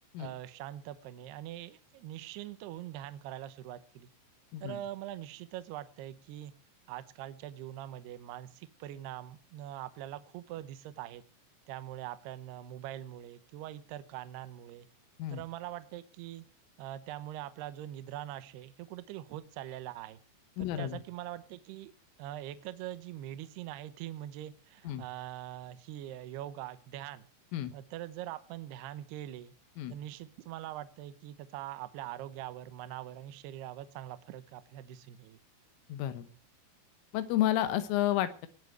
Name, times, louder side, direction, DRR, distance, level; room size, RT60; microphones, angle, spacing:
voice 1, 0.2-4.1 4.6-6.5 6.9-11.2 11.7-14.9 15.3-16.4 16.8-20.2 20.6-21.9 22.2-27.3 27.7-29.5 29.9-35.4, right 13 dB, 75° right, 12 dB, 2.5 m, -43 dB
voice 2, 20.6-21.0 24.9-25.0 27.5-27.7 29.8-30.0 35.9-36.3 37.1-38.5, left 13 dB, 85° left, 11 dB, 3.6 m, -31 dB
19.0 x 7.4 x 7.9 m, 0.41 s
omnidirectional pair, 5.6 m